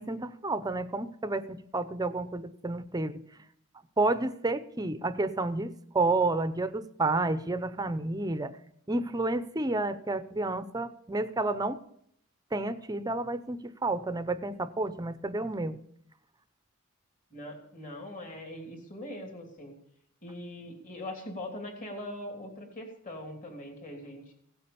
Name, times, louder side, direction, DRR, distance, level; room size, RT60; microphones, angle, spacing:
voice 1, 0.0-3.2 4.0-8.6 8.9-11.8 12.5-15.8, right 2 dB, 20° right, 12 dB, 0.6 m, -30 dB
voice 2, 17.3-19.7 20.2-24.3, left 1 dB, 40° left, 2 dB, 3.1 m, -41 dB
17.0 x 8.7 x 6.9 m, 0.68 s
head